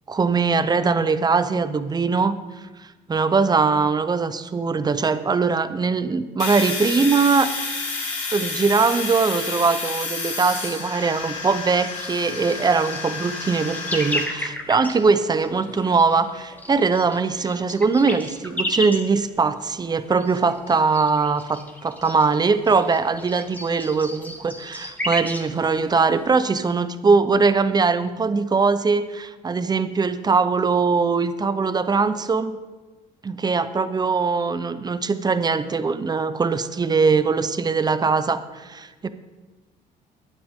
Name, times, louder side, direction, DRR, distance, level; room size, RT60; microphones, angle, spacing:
voice 1, 0.1-2.4 3.1-7.5 8.3-32.5 33.2-39.1, right 4 dB, 25° right, 12 dB, 0.8 m, -21 dB
Domestic sounds home sounds, 6.4-14.2, left 4 dB, 45° left, 4.6 m, -30 dB
sound 1, 10.9-26.7, left 1 dB, 10° left, 1.5 m, -35 dB
21.0 x 8.5 x 3.7 m, 1.2 s
cardioid pair, 110°, 17 cm